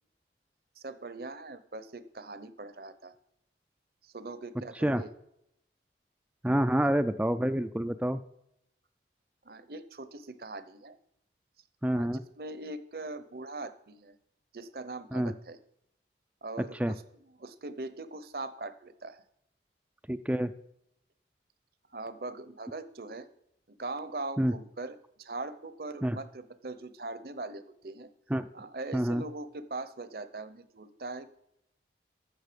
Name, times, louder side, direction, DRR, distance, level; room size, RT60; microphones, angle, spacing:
voice 1, 0.8-3.1 4.0-5.1 9.4-11.0 11.9-12.1 12.4-14.2 14.5-15.6 16.4-17.0 17.4-19.2 21.9-23.3 23.7-28.1 28.5-31.3, right 2 dB, 55° right, 13 dB, 0.8 m, -41 dB
voice 2, 6.4-8.2 11.8-12.2 15.1-15.3 16.8-16.9 20.1-20.5 24.4-24.5 26.0-26.2 28.3-28.5 28.9-29.2, right 1 dB, 5° right, 11 dB, 0.4 m, -27 dB
14.5 x 6.4 x 5.1 m, 0.78 s
head